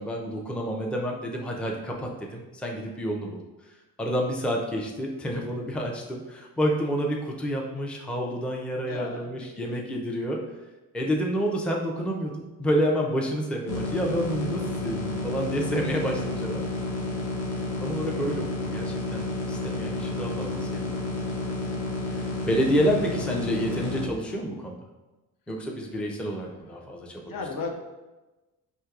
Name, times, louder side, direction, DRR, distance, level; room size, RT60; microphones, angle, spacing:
voice 1, 0.0-3.4 4.0-10.4 10.9-16.7 17.8-21.0 22.1-24.8 25.5-27.4, equal, 5° left, 0 dB, 0.5 m, -29 dB
voice 2, 8.9-9.8 21.4-21.8 26.5-26.8 27.3-27.7, left 4 dB, 60° left, 3 dB, 0.7 m, -37 dB
sound 1, 13.7-24.1, left 2 dB, 85° left, 0.9 m, -31 dB
4.4 x 2.9 x 2.4 m, 1.1 s
cardioid pair, 80°, 39 cm